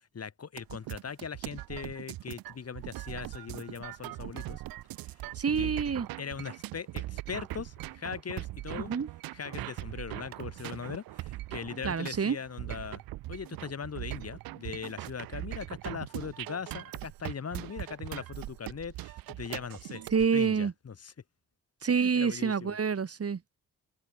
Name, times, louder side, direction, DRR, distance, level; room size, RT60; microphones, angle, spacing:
voice 1, 0.1-4.6 5.0-5.2 5.5-5.7 6.2-8.9 9.3-13.0 13.3-20.0 20.3-21.1 22.0-22.8, left 6 dB, 45° left, 2.0 m, -40 dB
sound 1, 0.6-20.3, right 17 dB, 85° right, 1.3 m, -40 dB
voice 2, 5.4-6.1 8.9-9.1 11.8-12.4 20.1-20.7 21.8-23.6, right 6 dB, 45° right, 2.1 m, -27 dB
open air
supercardioid pair, 50°, 34 cm